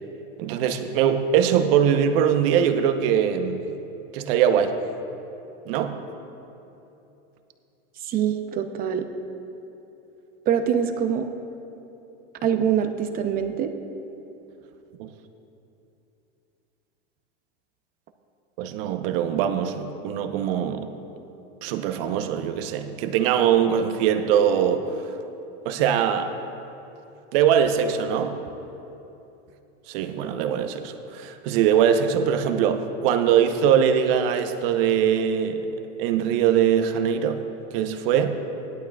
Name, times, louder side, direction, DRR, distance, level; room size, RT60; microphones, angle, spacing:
voice 1, 0.4-3.7 4.1-4.8 5.7-6.0 15.0-15.1 18.6-20.9 21.6-25.1 25.6-26.3 27.3-28.4 29.9-35.7 36.0-37.4 37.7-38.3, right 8 dB, 55° right, 7 dB, 0.9 m, -22 dB
voice 2, 8.1-9.0 10.5-11.3 12.4-13.7, right 8 dB, 25° right, 7 dB, 0.6 m, -24 dB
16.5 x 11.5 x 2.3 m, 2.9 s
supercardioid pair, 130°, 35 cm